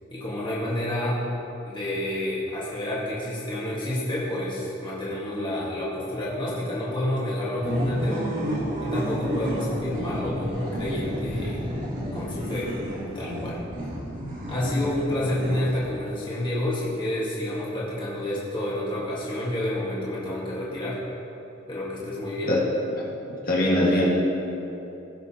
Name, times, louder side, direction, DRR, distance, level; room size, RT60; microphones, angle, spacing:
voice 1, 0.1-1.2 1.7-8.3 8.8-11.6 12.1-12.7 13.1-13.6 14.5-21.0 21.7-22.5, left 1 dB, 25° left, -7 dB, 1.6 m, -29 dB
sound 1, 7.6-16.1, equal, 45° right, 2.2 m, -31 dB
voice 2, 23.4-24.0, left 1 dB, 50° left, -5 dB, 1.8 m, -21 dB
18.0 x 6.1 x 2.9 m, 3.0 s
head